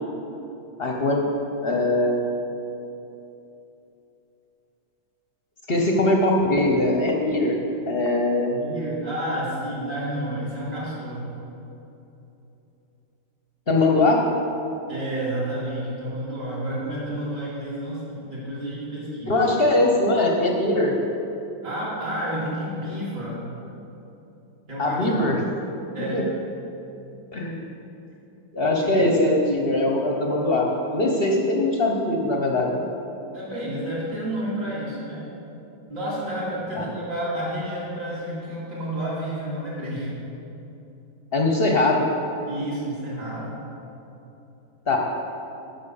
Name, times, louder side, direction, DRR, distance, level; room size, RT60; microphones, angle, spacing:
voice 1, 0.8-1.3 1.6-2.2 5.7-7.6 7.9-8.5 13.7-14.2 19.3-20.9 24.8-25.4 26.1-26.2 27.3-27.6 28.5-32.8 36.8-36.9 41.3-42.0 44.9-45.0, left 2 dB, 50° left, 0 dB, 0.7 m, -21 dB
voice 2, 8.5-11.3 14.9-19.4 21.6-23.5 24.7-25.4 25.9-26.3 28.7-29.0 33.3-35.3 35.9-40.1 42.5-43.6, right 1 dB, 60° right, -10 dB, 3.2 m, -30 dB
10.5 x 5.9 x 6.9 m, 2.9 s
omnidirectional pair, 2.2 m